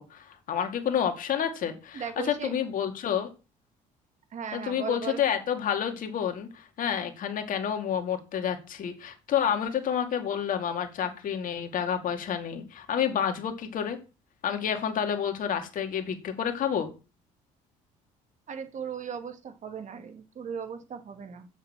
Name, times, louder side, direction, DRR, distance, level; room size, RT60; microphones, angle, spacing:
voice 1, 0.0-3.3 4.5-14.0 14.4-16.9, left 8 dB, 55° left, 6 dB, 2.4 m, -29 dB
voice 2, 1.9-2.5 4.3-5.3 18.5-21.5, right 6 dB, 50° right, 8 dB, 2.2 m, -37 dB
7.2 x 6.6 x 7.4 m, 0.32 s
supercardioid pair, 75°, 16 cm